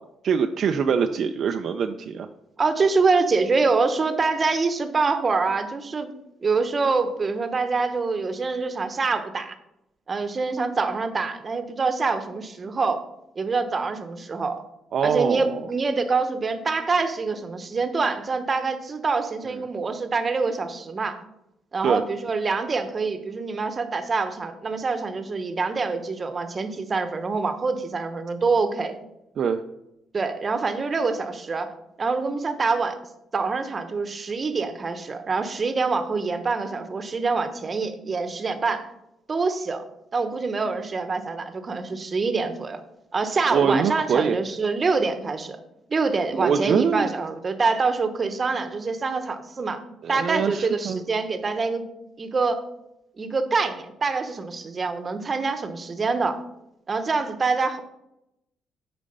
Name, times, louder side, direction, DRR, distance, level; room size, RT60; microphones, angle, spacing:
voice 1, 0.2-2.3 14.9-15.6 21.8-22.0 29.4-29.6 43.5-44.4 46.3-47.1 50.0-51.0, right 6 dB, 55° right, 6 dB, 0.4 m, -23 dB
voice 2, 2.6-6.1 6.4-9.5 10.1-13.0 13.4-14.6 15.0-21.2 21.7-29.0 30.1-31.7 32.0-33.0 33.3-38.9 39.3-39.8 40.1-42.8 43.1-45.6 45.9-49.8 50.1-51.9 52.2-52.6 53.2-56.4 56.9-57.8, right 4 dB, 30° right, 9 dB, 0.9 m, -25 dB
8.6 x 5.1 x 5.4 m, 0.86 s
cardioid pair, 115°, 0 cm